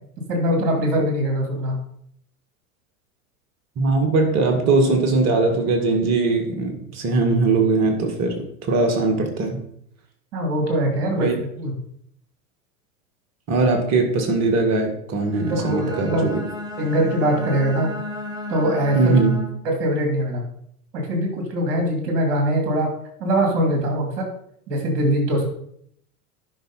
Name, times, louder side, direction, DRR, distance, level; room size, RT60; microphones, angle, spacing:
voice 1, 0.3-1.8 10.3-11.7 15.5-16.4 16.8-17.9 18.5-19.1 19.6-20.4 20.9-22.9 23.2-24.3 24.7-25.4, right 1 dB, 50° right, 2 dB, 3.4 m, -22 dB
voice 2, 3.8-9.6 11.1-11.3 13.5-16.4 19.0-19.4, right 3 dB, 35° right, 4 dB, 2.0 m, -20 dB
Bowed string instrument, 15.3-19.8, left 2 dB, 10° right, 1.6 m, -33 dB
11.5 x 5.8 x 4.3 m, 0.70 s
figure-of-eight pair, 90°, 45 cm